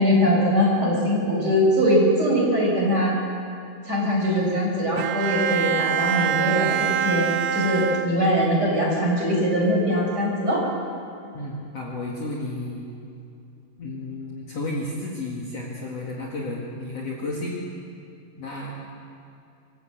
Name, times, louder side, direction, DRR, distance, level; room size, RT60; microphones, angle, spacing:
voice 1, 0.0-3.2 3.9-10.6, equal, 25° right, -3 dB, 5.8 m, -21 dB
Bowed string instrument, 5.0-8.6, right 9 dB, 75° right, 2.6 m, -25 dB
voice 2, 11.3-12.9 13.8-17.6 18.4-18.8, left 2 dB, 45° left, -2 dB, 2.9 m, -32 dB
26.5 x 16.5 x 8.1 m, 2.6 s
omnidirectional pair, 4.5 m